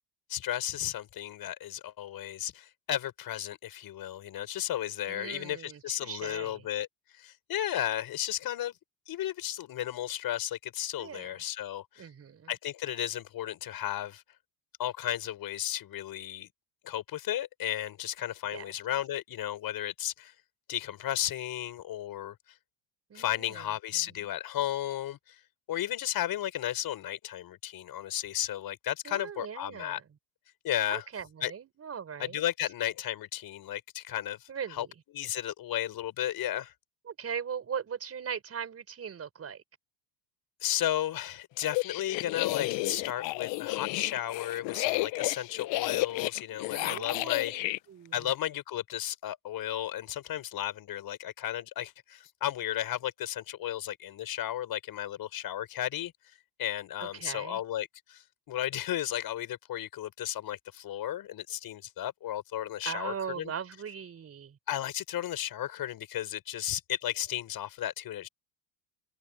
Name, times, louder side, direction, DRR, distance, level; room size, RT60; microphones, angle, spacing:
voice 1, 0.3-6.9 7.1-8.7 9.1-12.1 12.5-14.2 14.8-16.5 16.8-20.3 20.7-22.4 23.1-25.4 25.7-30.0 30.6-31.0 31.4-31.5 32.2-34.9 35.1-36.7 40.6-47.5 48.1-56.1 56.6-63.5 64.7-68.3, left 12 dB, 45° left, 5.2 m, -34 dB
voice 2, 5.1-6.7 11.0-11.4 12.0-12.5 18.5-18.7 23.1-24.0 29.0-30.1 30.9-32.4 34.5-34.9 37.1-39.6 46.7-48.3 57.0-57.6 62.8-64.6, right 7 dB, 30° right, 5.2 m, -40 dB
sound 1, 41.6-47.8, left 20 dB, 65° left, 1.0 m, -32 dB
cardioid pair, 125°, 48 cm